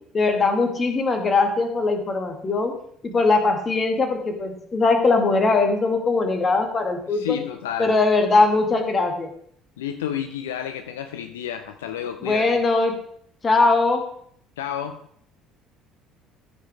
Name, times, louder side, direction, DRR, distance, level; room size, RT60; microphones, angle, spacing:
voice 1, 0.1-2.7 3.0-7.4 7.8-9.3 12.2-12.9 13.4-14.0, left 3 dB, 30° left, 5 dB, 2.1 m, -20 dB
voice 2, 7.1-8.0 9.8-12.6 14.6-15.1, left 9 dB, 75° left, 8 dB, 0.5 m, -30 dB
14.0 x 5.4 x 4.8 m, 0.64 s
figure-of-eight pair, 55°, 0 cm